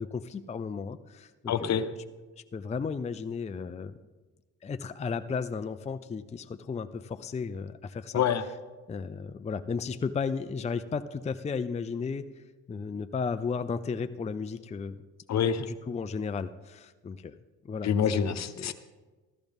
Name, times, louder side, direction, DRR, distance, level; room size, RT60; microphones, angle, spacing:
voice 1, 0.0-1.9 2.5-4.0 4.6-8.2 8.9-12.3 12.7-15.0 15.7-17.3 17.6-18.3 18.6-18.7, left 5 dB, 20° left, 9 dB, 0.5 m, -34 dB
voice 2, 1.5-1.8 8.1-8.4 15.3-15.7 17.8-18.7, left 8 dB, 60° left, 11 dB, 1.0 m, -26 dB
14.5 x 14.0 x 3.6 m, 1.2 s
cardioid pair, 90°, 30 cm